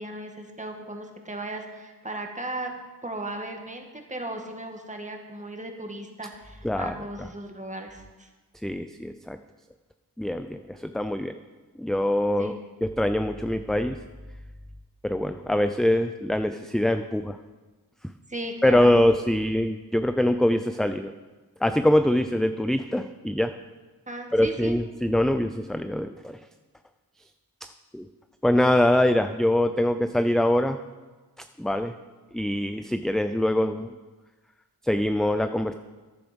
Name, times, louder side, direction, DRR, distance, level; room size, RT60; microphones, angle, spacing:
voice 1, 0.0-2.7 3.0-8.3 12.4-12.6 18.3-18.9 24.1-24.8, right 1 dB, 20° right, 3 dB, 1.9 m, -36 dB
voice 2, 6.6-6.9 8.6-9.4 10.2-11.3 11.8-12.5 12.8-14.0 15.0-17.4 18.6-21.1 21.6-23.5 24.3-26.4 27.9-28.1 28.4-30.8 31.6-31.9 32.3-33.9 34.8-35.7, left 1 dB, ahead, 9 dB, 0.4 m, -23 dB
14.0 x 10.5 x 5.2 m, 1.3 s
wide cardioid pair, 90°, 38 cm